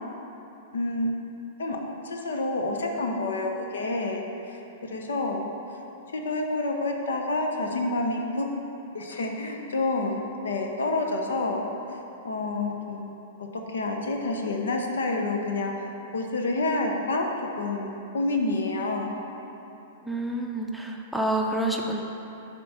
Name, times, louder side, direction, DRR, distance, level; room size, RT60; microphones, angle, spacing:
voice 1, 0.7-1.1 1.6-1.8 2.0-5.4 6.1-8.5 8.9-11.6 12.2-13.1 13.7-15.9 16.1-17.3 17.6-19.1, left 2 dB, 80° left, 2 dB, 0.7 m, -28 dB
voice 2, 20.0-22.0, right 1 dB, ahead, 0 dB, 0.5 m, -28 dB
7.3 x 3.0 x 5.6 m, 2.9 s
hypercardioid pair, 110°, 0 cm